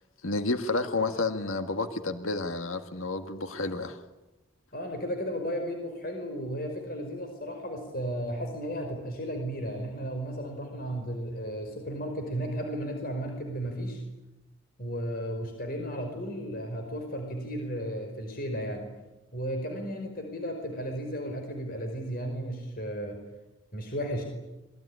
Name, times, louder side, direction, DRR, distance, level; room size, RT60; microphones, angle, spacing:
voice 1, 0.2-4.0, left 3 dB, 90° left, 8 dB, 1.8 m, -30 dB
voice 2, 4.7-14.0 14.8-18.9 19.3-23.2 23.7-24.2, equal, 45° left, 4 dB, 5.2 m, -34 dB
26.5 x 21.5 x 10.0 m, 1.0 s
head